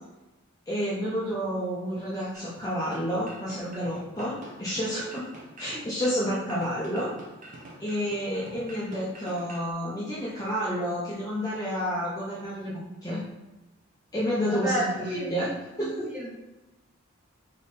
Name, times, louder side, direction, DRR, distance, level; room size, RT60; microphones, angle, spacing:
voice 1, 0.7-5.3 5.6-7.1 7.8-13.2 14.1-15.5 15.8-16.1, equal, 15° left, -7 dB, 0.7 m, -30 dB
sound 1, 2.3-9.7, right 1 dB, 40° right, 0.8 m, -46 dB
voice 2, 14.5-16.3, right 1 dB, 10° right, -7 dB, 1.3 m, -32 dB
3.5 x 3.1 x 4.0 m, 1.1 s
head